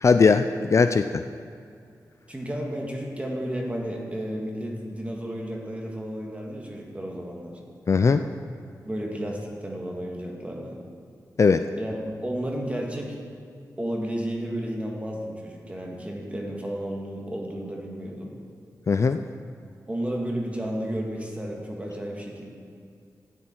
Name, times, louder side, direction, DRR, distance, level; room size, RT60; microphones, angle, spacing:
voice 1, 0.0-1.1 7.9-8.2 11.4-11.6 18.9-19.2, left 5 dB, 50° left, 9 dB, 0.4 m, -19 dB
voice 2, 2.3-7.6 8.8-10.8 11.8-13.2 13.8-18.3 19.9-22.5, equal, 20° right, -1 dB, 1.8 m, -32 dB
12.5 x 9.5 x 4.5 m, 2.4 s
wide cardioid pair, 85°, 7 cm